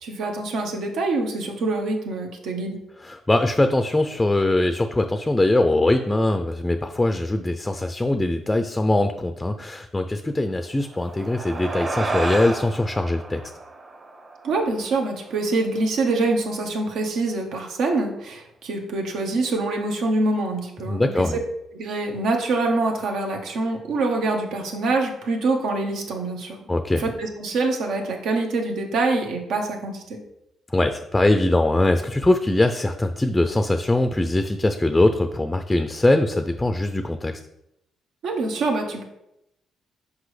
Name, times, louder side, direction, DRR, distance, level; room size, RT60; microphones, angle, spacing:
voice 1, 0.0-2.8 14.4-21.3 21.7-30.2 38.2-39.0, right 3 dB, 75° right, 3 dB, 1.0 m, -25 dB
voice 2, 3.0-13.4 20.9-21.4 26.7-27.0 30.7-37.3, left 1 dB, 15° left, 7 dB, 0.4 m, -21 dB
sound 1, 10.8-15.5, right 2 dB, 35° right, 1.1 m, -31 dB
6.0 x 5.0 x 3.2 m, 0.83 s
cardioid pair, 90°, 0 cm